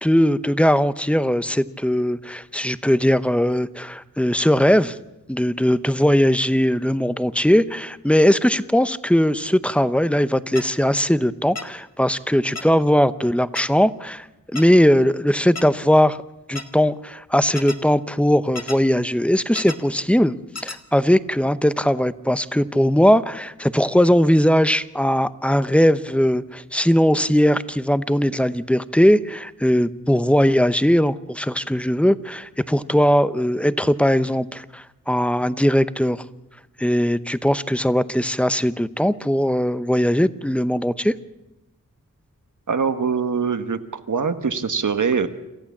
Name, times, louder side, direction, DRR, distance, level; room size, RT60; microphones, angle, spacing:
voice 1, 0.0-5.0 5.3-14.3 14.5-16.2 16.5-20.3 20.6-36.2 36.8-41.1, equal, 5° left, 14 dB, 0.7 m, -19 dB
sound 1, 10.6-10.7 11.6-11.7 12.6-12.7 13.6-13.7 14.6-14.7 15.6-15.7 16.6-16.7 17.6-17.8 18.6-18.8 19.6-19.8 20.6-20.8, left 3 dB, 55° left, 1.6 m, -31 dB
voice 2, 42.7-45.3, right 5 dB, 75° right, 9 dB, 1.3 m, -23 dB
27.5 x 14.5 x 7.2 m, 0.99 s
wide cardioid pair, 80°, 31 cm